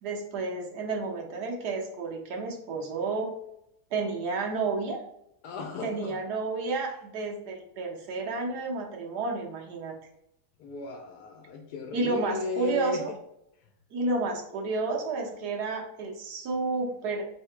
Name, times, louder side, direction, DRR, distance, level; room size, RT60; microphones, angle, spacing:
voice 1, 0.0-3.3 3.9-5.0 5.8-9.9 11.9-13.1 13.9-17.2, right 3 dB, 85° right, 1 dB, 1.4 m, -31 dB
voice 2, 5.4-6.2 10.6-13.0, left 4 dB, 85° left, 2 dB, 1.1 m, -36 dB
3.5 x 2.8 x 4.4 m, 0.78 s
omnidirectional pair, 1.7 m